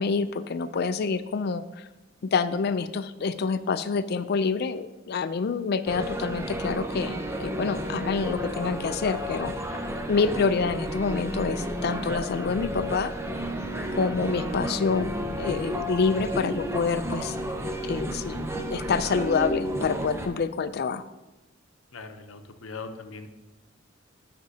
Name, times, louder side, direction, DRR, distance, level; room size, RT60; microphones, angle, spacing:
voice 1, 0.0-1.9 2.2-9.8 10.1-13.1 13.9-15.1 15.4-17.4 17.8-21.0, left 5 dB, 55° left, 12 dB, 0.4 m, -27 dB
sound 1, 5.9-20.3, equal, 15° right, 0.6 m, -32 dB
voice 2, 21.9-23.3, left 4 dB, 90° left, 8 dB, 0.7 m, -40 dB
12.5 x 5.9 x 2.8 m, 1.1 s
head